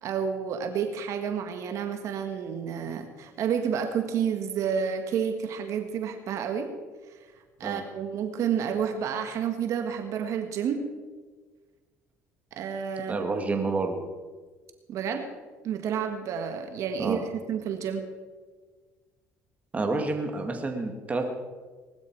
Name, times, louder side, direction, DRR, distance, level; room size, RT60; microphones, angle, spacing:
voice 1, 0.0-6.7 7.6-10.8 12.6-13.3 14.9-15.3 15.6-18.0, right 7 dB, 65° right, 6 dB, 1.6 m, -30 dB
voice 2, 13.1-14.0 17.0-17.2 19.7-21.3, right 3 dB, 25° right, 4 dB, 2.1 m, -29 dB
19.5 x 12.5 x 4.7 m, 1.4 s
cardioid pair, 95°, 6 cm